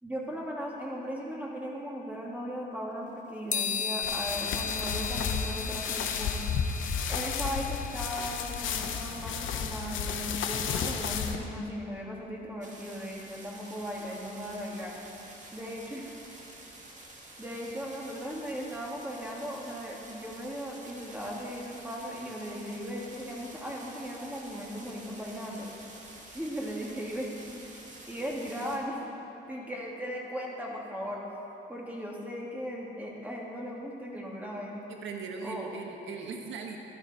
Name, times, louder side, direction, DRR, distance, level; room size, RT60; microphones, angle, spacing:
voice 1, 0.0-6.4 7.1-14.9 15.5-16.2 17.4-25.7 26.3-27.3 28.1-29.0 29.5-31.2 31.7-34.8 35.4-35.7, equal, 10° right, -3 dB, 2.8 m, -37 dB
sound 1, 3.5-8.8, left 6 dB, 40° left, 1.2 m, -36 dB
sound 2, 4.0-11.4, left 6 dB, 80° left, 1.0 m, -32 dB
sound 3, 12.6-28.8, right 2 dB, 40° right, 2.3 m, -49 dB
voice 2, 34.9-36.8, right 5 dB, 70° right, 2 dB, 1.4 m, -39 dB
14.5 x 11.5 x 4.6 m, 2.9 s
cardioid pair, 90°, 20 cm